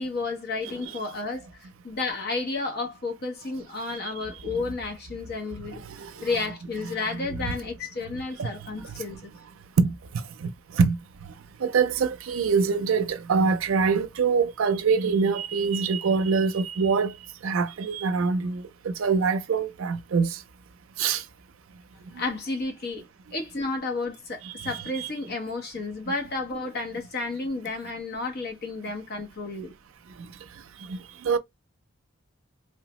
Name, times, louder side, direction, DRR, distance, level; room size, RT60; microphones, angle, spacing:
voice 1, 0.0-9.3 22.1-23.0 23.3-29.7, left 3 dB, 50° left, 0.8 m, -32 dB
voice 2, 5.7-6.3 8.4-8.5 8.8-8.9 9.8-11.0 11.6-17.2 17.4-20.4 21.0-21.2 24.4-25.1 30.2-30.3 30.8-31.4, right 5 dB, 80° right, 0.5 m, -25 dB
3.1 x 2.0 x 3.0 m
head